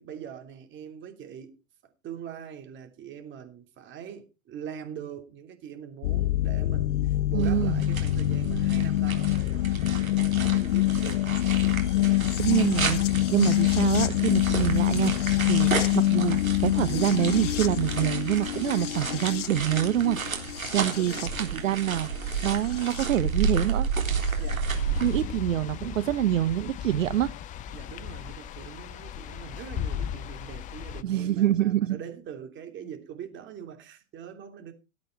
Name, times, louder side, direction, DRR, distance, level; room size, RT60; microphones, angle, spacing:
voice 1, 0.0-1.6 2.0-11.3 20.8-21.3 24.4-24.7 27.7-34.7, right 8 dB, 30° right, 3.0 m, -42 dB
sound 1, 6.0-23.1 24.2-24.3, left 15 dB, 60° left, 0.6 m, -26 dB
voice 2, 7.3-7.8 12.1-20.2 20.5-23.9 24.2-24.4 25.0-27.3 31.0-32.0, right 12 dB, 65° right, 0.8 m, -26 dB
sound 2, 7.4-25.2, right 5 dB, 85° right, 3.7 m, -32 dB
sound 3, 24.7-31.0, left 9 dB, 20° left, 0.5 m, -37 dB
17.5 x 8.5 x 4.6 m
figure-of-eight pair, 105°, 41 cm